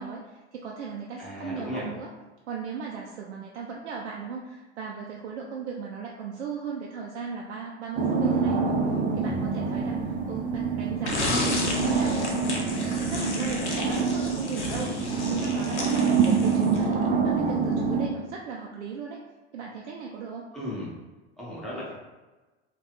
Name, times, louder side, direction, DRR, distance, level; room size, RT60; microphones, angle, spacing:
voice 1, 0.0-2.1 2.5-10.0 10.3-13.6 13.9-14.9 15.3-19.2 19.5-20.5, right 5 dB, 80° right, -1 dB, 0.5 m, -37 dB
voice 2, 1.2-1.9 11.2-12.0 20.5-21.0 21.4-21.9, left 1 dB, ahead, -8 dB, 1.4 m, -35 dB
sound 1, 8.0-18.1, right 5 dB, 25° right, 0.5 m, -26 dB
sound 2, 11.0-16.9, left 2 dB, 85° left, 0.7 m, -32 dB
3.2 x 2.4 x 3.1 m, 1.2 s
hypercardioid pair, 85°, 34 cm